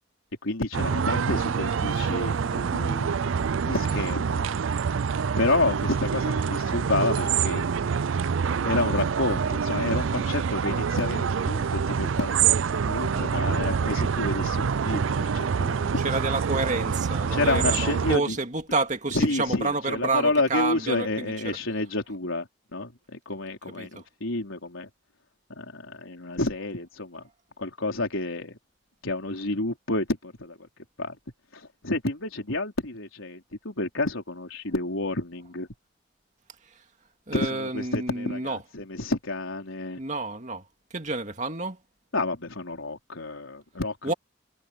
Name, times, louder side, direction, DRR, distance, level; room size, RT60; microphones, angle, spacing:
voice 1, 0.4-3.2 3.6-4.5 5.4-7.7 8.6-16.0 17.3-18.4 19.1-24.9 25.5-27.2 27.6-28.6 29.0-30.7 31.0-31.2 31.5-35.7 37.3-40.0 42.1-44.1, left 2 dB, 85° left, 4.3 m, -29 dB
sound 1, 0.7-18.2, right 6 dB, 75° right, 0.4 m, -26 dB
voice 2, 13.1-13.5 16.0-21.6 23.8-24.0 37.3-38.6 40.0-40.6 40.9-41.8 44.0-44.1, right 3 dB, 40° right, 2.2 m, -29 dB
head